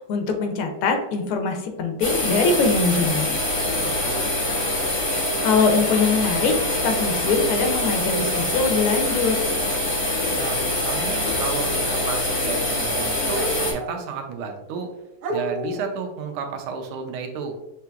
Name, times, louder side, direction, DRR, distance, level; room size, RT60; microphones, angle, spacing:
voice 1, 0.0-3.3 5.2-9.4, left 4 dB, 80° left, 5 dB, 1.5 m, -22 dB
sound 1, 2.0-13.7, left 1 dB, 55° left, 0.3 m, -24 dB
voice 2, 3.8-4.2 10.4-14.9 15.3-17.6, right 5 dB, 85° right, 4 dB, 1.5 m, -32 dB
sound 2, 13.3-14.1 14.8-14.9 15.2-16.0, right 1 dB, 65° right, 1.0 m, -31 dB
5.8 x 2.8 x 2.3 m, 0.95 s
omnidirectional pair, 2.4 m